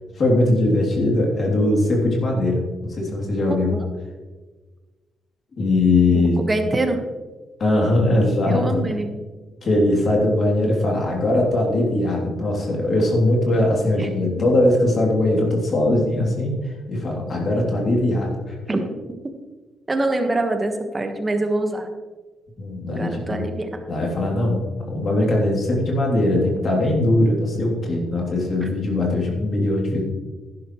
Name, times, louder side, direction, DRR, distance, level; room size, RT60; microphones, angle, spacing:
voice 1, 0.2-3.7 5.6-6.4 7.6-8.9 9.6-16.5 16.9-18.6 22.6-23.5 23.9-30.0, left 1 dB, 45° left, -1 dB, 3.0 m, -20 dB
voice 2, 3.5-3.9 6.1-6.2 6.5-7.0 8.5-9.1 13.5-13.7 14.0-14.1 18.7-18.8 19.9-21.9 22.9-23.7 28.6-28.7, right 2 dB, 20° right, 5 dB, 1.4 m, -24 dB
11.0 x 10.5 x 3.2 m, 1.3 s
cardioid pair, 90°, 0 cm